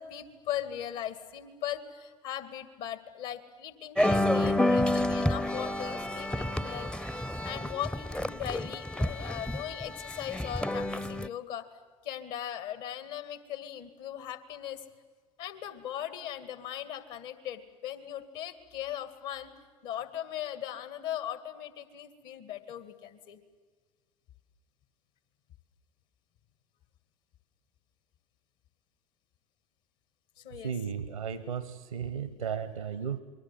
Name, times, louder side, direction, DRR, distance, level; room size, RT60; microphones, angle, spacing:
voice 1, 0.0-11.7 12.0-14.8 15.4-19.5 19.8-23.4 30.4-30.7, left 11 dB, 60° left, 12 dB, 2.2 m, -39 dB
sound 1, 4.0-11.3, left 1 dB, 5° left, 0.7 m, -29 dB
voice 2, 30.6-33.2, right 7 dB, 85° right, 16 dB, 1.0 m, -35 dB
28.0 x 22.5 x 7.8 m, 1.5 s
figure-of-eight pair, 65°, 18 cm